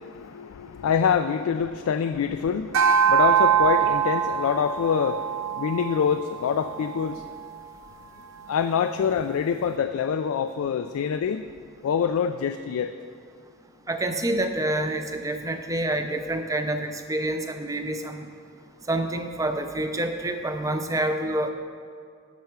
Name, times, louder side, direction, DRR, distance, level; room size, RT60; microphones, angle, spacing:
voice 1, 0.0-7.2 8.5-11.5 11.8-12.9, left 7 dB, 85° left, 9 dB, 0.3 m, -25 dB
sound 1, 2.7-7.3, right 8 dB, 75° right, 0.5 m, -23 dB
voice 2, 13.9-18.2 18.9-21.5, right 1 dB, 15° right, 6 dB, 0.5 m, -27 dB
10.5 x 6.7 x 4.7 m, 2.1 s
head